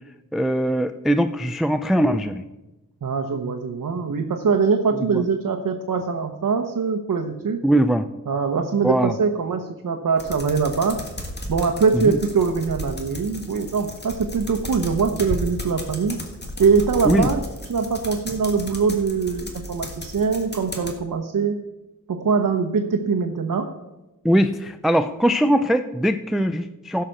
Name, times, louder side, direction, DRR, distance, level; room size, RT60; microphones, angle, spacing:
voice 1, 0.3-2.4 5.1-5.2 7.6-8.1 8.8-9.2 11.9-12.2 17.1-17.3 24.2-27.0, equal, ahead, 10 dB, 0.4 m, -21 dB
voice 2, 3.0-7.6 8.3-11.0 11.5-16.2 16.6-17.4 17.7-21.6 22.1-23.7, right 5 dB, 70° right, 4 dB, 0.9 m, -22 dB
sound 1, 10.2-20.9, left 1 dB, 30° left, 1.8 m, -34 dB
16.0 x 5.7 x 6.5 m, 1.0 s
wide cardioid pair, 125°, 33 cm